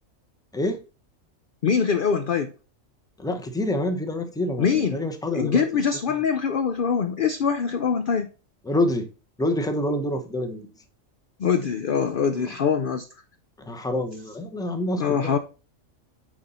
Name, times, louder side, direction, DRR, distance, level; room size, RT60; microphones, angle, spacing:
voice 1, 1.6-2.5 4.6-5.0 5.3-8.3 11.4-13.0 15.0-15.4, left 6 dB, 55° left, 0.6 m, -23 dB
voice 2, 3.2-5.6 8.6-9.1 9.4-10.6 12.3-12.5 13.6-15.4, left 1 dB, 5° left, 0.8 m, -27 dB
9.5 x 4.0 x 4.2 m
omnidirectional pair, 1.4 m